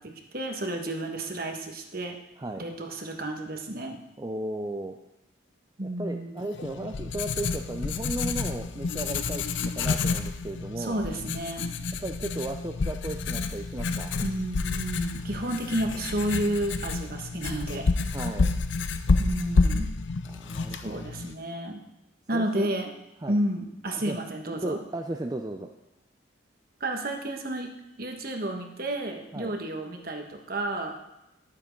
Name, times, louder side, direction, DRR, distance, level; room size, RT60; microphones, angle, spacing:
voice 1, 0.0-2.2 2.6-4.0 5.8-6.5 10.8-11.7 14.2-17.9 19.2-19.9 20.7-21.8 22.3-22.9 23.3-24.8 26.8-27.7 28.0-30.9, right 1 dB, 50° right, 4 dB, 1.3 m, -31 dB
voice 2, 4.2-5.0 5.8-11.0 12.0-14.1 18.1-18.5 20.2-21.0 22.3-22.7 23.2-23.4 23.9-24.2 24.5-25.7 29.3-29.5, right 1 dB, 20° right, 4 dB, 0.4 m, -35 dB
Writing, 6.5-21.3, left 4 dB, 70° left, 0.5 m, -29 dB
11.0 x 7.4 x 5.3 m, 0.92 s
head